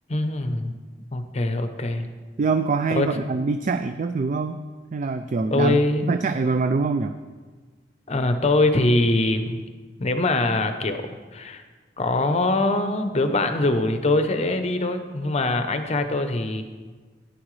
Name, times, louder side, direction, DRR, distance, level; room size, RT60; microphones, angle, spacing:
voice 1, 0.1-0.7 1.1-2.0 2.9-3.1 5.5-6.1 8.1-9.6 10.0-11.6 12.0-16.6, left 2 dB, 35° left, 8 dB, 0.7 m, -23 dB
voice 2, 2.4-4.6 4.9-7.2, right 4 dB, 40° right, 9 dB, 0.3 m, -24 dB
13.5 x 9.9 x 3.2 m, 1.4 s
head